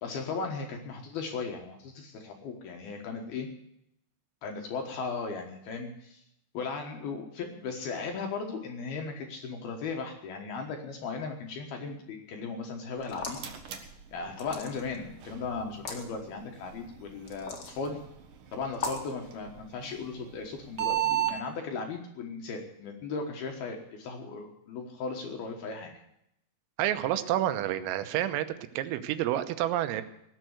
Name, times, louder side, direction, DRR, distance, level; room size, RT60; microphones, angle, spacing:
voice 1, 0.0-3.5 4.4-6.2 6.5-13.4 14.1-18.0 18.5-25.9, left 4 dB, 65° left, 3 dB, 2.6 m, -37 dB
sound 1, 12.9-21.4, right 13 dB, 65° right, 2.2 m, -37 dB
sound 2, 13.0-13.5 14.4-15.0 15.7-16.0 17.3-17.7 18.7-19.1, left 4 dB, 50° left, 1.8 m, -37 dB
voice 2, 26.8-28.5 28.8-30.0, right 12 dB, 90° right, 10 dB, 3.6 m, -29 dB
19.0 x 7.4 x 8.0 m, 0.79 s
omnidirectional pair, 5.8 m